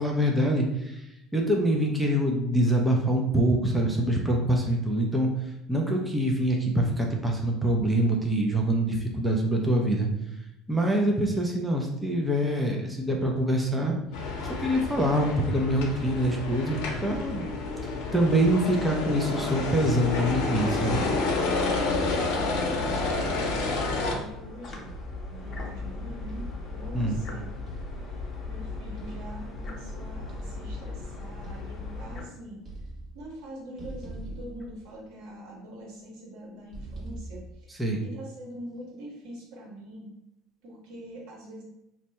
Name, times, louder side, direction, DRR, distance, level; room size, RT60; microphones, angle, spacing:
voice 1, 0.0-5.3 5.7-10.1 10.7-13.9 14.4-17.4 17.8-21.0 26.9-27.2 37.8-38.0, right 1 dB, 5° right, 0 dB, 0.5 m, -25 dB
sound 1, 14.1-24.2, left 3 dB, 80° left, 0.7 m, -29 dB
sound 2, 22.0-22.6 23.5-24.1 24.9-25.7 26.3-27.1 27.7-28.3 29.0-29.7 30.3-31.0 31.4-32.3 32.6-33.4 33.8-35.3 36.7-37.7, right 2 dB, 35° right, 1.1 m, -42 dB
voice 2, 22.3-24.9 25.3-32.6 33.1-40.1 40.6-41.6, equal, 75° right, -3 dB, 1.3 m, -44 dB
sound 3, 24.2-32.2, left 3 dB, 30° left, 0.7 m, -38 dB
2.7 x 2.2 x 4.1 m, 0.85 s
cardioid pair, 125°, 0 cm